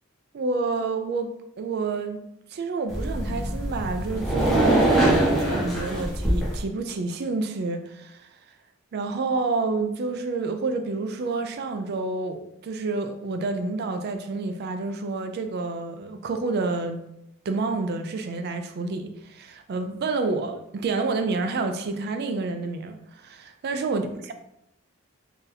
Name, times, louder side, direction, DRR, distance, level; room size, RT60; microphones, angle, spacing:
voice 1, 0.3-2.2 2.5-8.3 8.9-17.0 17.5-24.3, right 3 dB, 50° right, 0.3 m, -29 dB
sound 1, 2.9-6.6, right 1 dB, ahead, 0.9 m, -23 dB
2.7 x 2.7 x 3.8 m
head